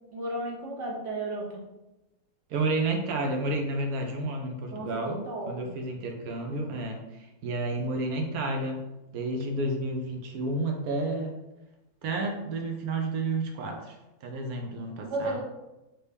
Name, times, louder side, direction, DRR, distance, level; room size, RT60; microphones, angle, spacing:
voice 1, 0.1-1.6 4.7-5.7 15.0-15.4, right 2 dB, 55° right, -2 dB, 1.1 m, -34 dB
voice 2, 2.5-7.0 7.4-8.9 9.1-11.4 12.0-15.4, right 2 dB, 75° right, 3 dB, 1.1 m, -31 dB
3.3 x 2.7 x 3.3 m, 0.97 s
omnidirectional pair, 1.6 m